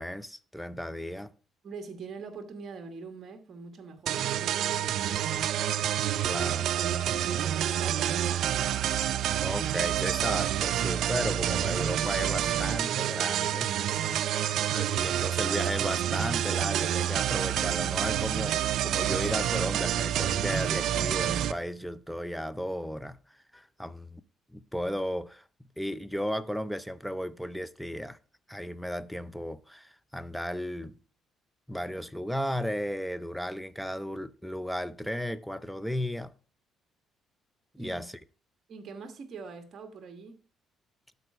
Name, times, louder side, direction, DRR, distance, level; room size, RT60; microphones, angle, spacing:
voice 1, 0.0-1.3 6.2-6.7 9.4-13.7 14.7-23.2 23.5-24.2 24.5-25.4 25.8-28.2 28.5-31.0 31.7-36.3 37.8-38.2, equal, ahead, 0.5 m, -34 dB
voice 2, 1.6-5.4 6.3-6.4 6.8-8.9 37.8-38.0 38.7-40.4, right 4 dB, 45° right, 1.3 m, -43 dB
sound 1, 4.1-21.5, right 11 dB, 70° right, 0.4 m, -28 dB
12.0 x 4.2 x 4.7 m
cardioid pair, 105°, 0 cm